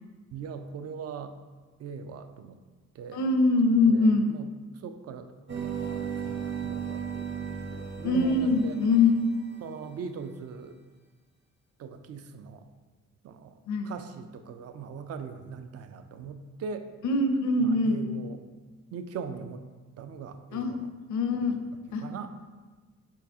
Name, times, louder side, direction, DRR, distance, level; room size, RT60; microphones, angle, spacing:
voice 1, 0.3-1.4 1.8-2.6 3.0-3.2 3.8-4.5 4.7-7.4 7.7-8.7 9.6-10.8 11.8-12.6 13.2-13.5 13.8-16.9 17.6-18.4 18.9-19.6 20.0-20.9 22.0-22.3, right 6 dB, 55° right, 9 dB, 0.4 m, -40 dB
voice 2, 3.1-4.3 8.0-9.1 13.7-13.9 17.0-18.0 20.5-20.7 21.1-21.6 21.9-22.0, left 3 dB, 75° left, 5 dB, 0.6 m, -23 dB
sound 1, 5.5-9.7, right 7 dB, 40° right, 0.9 m, -36 dB
4.4 x 4.0 x 2.8 m, 1.3 s
cardioid pair, 90°, 30 cm